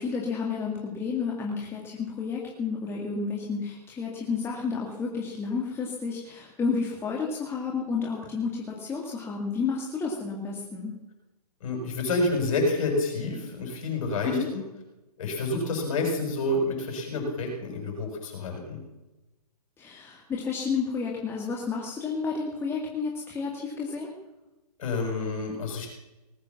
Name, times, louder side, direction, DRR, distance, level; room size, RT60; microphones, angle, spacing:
voice 1, 0.0-10.9 14.2-14.5 19.8-24.1, left 5 dB, 10° left, -2 dB, 2.1 m, -31 dB
voice 2, 11.6-14.6 15.2-18.8 24.8-25.9, left 2 dB, 55° left, 2 dB, 6.6 m, -28 dB
19.0 x 8.5 x 7.3 m, 1.0 s
hypercardioid pair, 145°, 21 cm